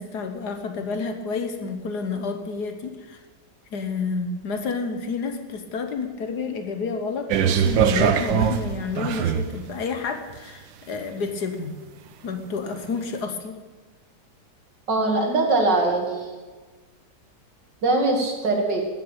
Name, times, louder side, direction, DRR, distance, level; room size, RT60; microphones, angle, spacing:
voice 1, 0.0-3.2 3.7-11.8 12.2-13.6, left 4 dB, 65° left, 7 dB, 1.8 m, -30 dB
sound 1, 7.3-9.6 10.3-10.4, right 8 dB, 90° right, 1.6 m, -21 dB
voice 2, 14.9-16.3 17.8-18.8, right 2 dB, 75° right, 2 dB, 2.9 m, -22 dB
14.5 x 7.6 x 8.9 m, 1.3 s
omnidirectional pair, 1.9 m